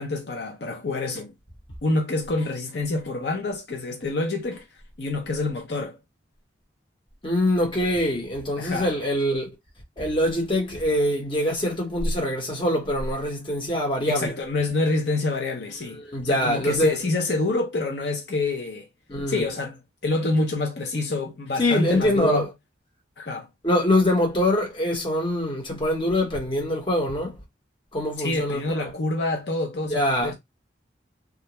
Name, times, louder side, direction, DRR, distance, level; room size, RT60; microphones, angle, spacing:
voice 1, 0.0-1.3 1.8-4.6 5.0-6.0 8.6-8.9 14.1-18.9 19.3-22.5 23.2-23.5 28.2-30.3, left 2 dB, 60° left, 0.6 m, -27 dB
voice 2, 7.2-9.5 10.0-14.3 15.9-17.0 19.1-19.4 21.6-22.5 23.6-27.4 27.9-28.9 29.9-30.3, left 1 dB, 25° left, 1.0 m, -24 dB
2.4 x 2.1 x 2.9 m
head